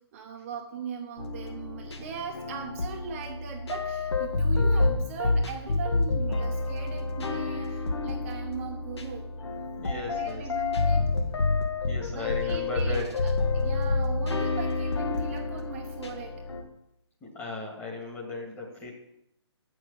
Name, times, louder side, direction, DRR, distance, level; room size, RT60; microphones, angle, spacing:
voice 1, 0.0-9.3 10.0-11.1 12.0-16.4, right 7 dB, 30° right, 1 dB, 1.0 m, -39 dB
sound 1, 1.2-16.6, left 3 dB, 65° left, 1.7 m, -28 dB
voice 2, 9.8-10.5 11.9-13.1 17.2-18.9, left 3 dB, 15° left, 0 dB, 1.9 m, -36 dB
8.1 x 6.4 x 7.0 m, 0.81 s
hypercardioid pair, 150°, 15 cm